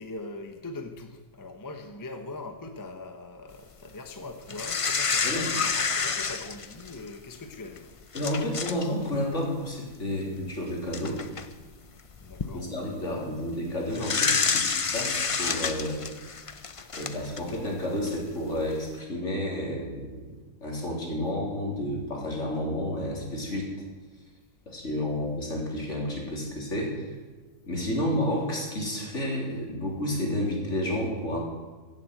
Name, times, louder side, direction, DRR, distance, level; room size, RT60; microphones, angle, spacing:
voice 1, 0.0-7.9 12.2-12.7 25.0-25.1, left 2 dB, 15° left, 6 dB, 0.9 m, -41 dB
sound 1, 4.5-7.1 7.8-7.9 8.1-8.9 9.1-9.3 10.4-10.5 10.9-11.5 12.1-12.5 13.9-17.6 18.1-18.2, left 5 dB, 35° left, 0.5 m, -28 dB
voice 2, 8.1-11.2 12.5-16.0 16.9-20.2 20.6-23.7 24.7-27.2 27.7-31.4, left 1 dB, 60° left, -1 dB, 3.7 m, -31 dB
15.5 x 7.6 x 7.9 m, 1.3 s
omnidirectional pair, 1.4 m